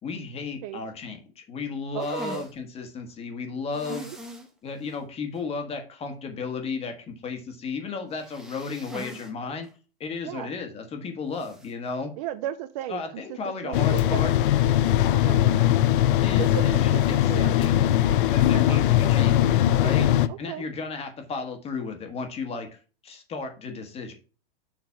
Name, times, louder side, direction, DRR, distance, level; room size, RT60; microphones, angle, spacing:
voice 1, 0.0-4.1 4.6-9.7 10.0-12.1 12.9-14.3 16.2-17.8 18.3-20.1 20.4-22.8 23.0-24.1, left 4 dB, 20° left, 5 dB, 1.5 m, -34 dB
voice 2, 1.9-2.4 3.9-4.2 10.2-10.5 12.2-13.2 13.6-14.2 15.1-15.4 16.4-17.5 18.5-18.8 19.8-20.6, right 11 dB, 40° right, 12 dB, 0.6 m, -35 dB
sound 1, 2.0-2.5 3.7-4.5 4.9-5.0 5.4-5.5 8.1-9.3 9.6-9.7 11.4-11.7, right 1 dB, ahead, 1.0 m, -41 dB
sound 2, 13.7-20.3, left 12 dB, 55° left, 0.6 m, -20 dB
7.3 x 3.8 x 5.7 m, 0.36 s
hypercardioid pair, 145°, 31 cm